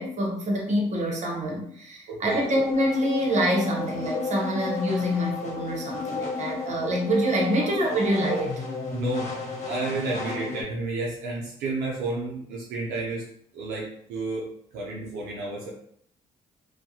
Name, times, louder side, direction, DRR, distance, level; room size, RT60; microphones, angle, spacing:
voice 1, 0.0-8.6, equal, 50° right, -1 dB, 0.8 m, -26 dB
voice 2, 2.1-2.4 7.5-7.6 8.9-9.3 9.7-13.2 13.5-14.5 14.7-15.7, right 2 dB, 75° right, -4 dB, 0.6 m, -31 dB
sound 1, 2.2-10.6, left 3 dB, 50° left, 1.1 m, -33 dB
2.3 x 2.1 x 2.8 m, 0.68 s
hypercardioid pair, 55°, 16 cm